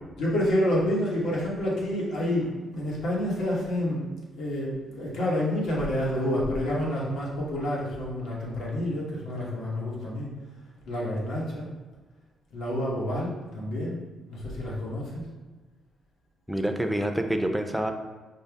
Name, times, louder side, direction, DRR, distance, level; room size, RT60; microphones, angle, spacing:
voice 1, 0.1-4.1 4.4-10.3 10.8-11.7 12.5-15.3, left 1 dB, 85° left, -5 dB, 1.2 m, -28 dB
voice 2, 16.5-17.9, right 1 dB, 5° right, 4 dB, 0.4 m, -27 dB
5.2 x 2.0 x 3.4 m, 1.2 s
cardioid pair, 100°, 0 cm